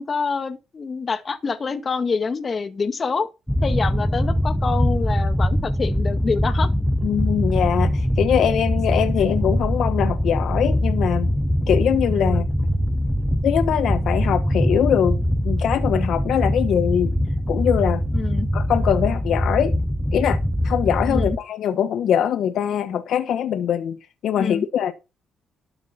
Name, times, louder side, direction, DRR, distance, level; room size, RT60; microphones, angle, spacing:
voice 1, 0.0-3.3 3.6-6.7 12.2-12.4 18.1-18.5 21.1-21.4 24.4-24.7, left 5 dB, 40° left, 1.9 m, -26 dB
sound 1, 3.5-21.4, equal, ahead, 1.0 m, -22 dB
voice 2, 7.0-11.3 11.7-12.4 13.4-15.2 15.4-17.1 17.5-18.0 18.5-19.8 20.1-20.4 20.6-24.0 24.2-24.9, left 9 dB, 70° left, 1.2 m, -22 dB
12.5 x 6.8 x 5.8 m
cardioid pair, 90°, 0 cm